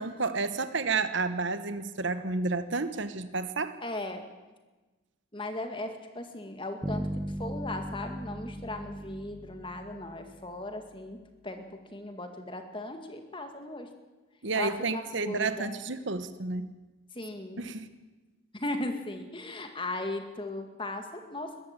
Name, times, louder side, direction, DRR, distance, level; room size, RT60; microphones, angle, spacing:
voice 1, 0.0-3.8 14.4-16.7 17.6-17.9, right 3 dB, 60° right, 11 dB, 1.1 m, -31 dB
voice 2, 3.8-4.2 5.3-13.9 14.6-15.7 17.1-17.7 18.5-21.5, left 2 dB, 25° left, 6 dB, 2.1 m, -37 dB
sound 1, 6.8-10.8, equal, 20° right, 1.2 m, -37 dB
22.0 x 14.5 x 9.0 m, 1.2 s
head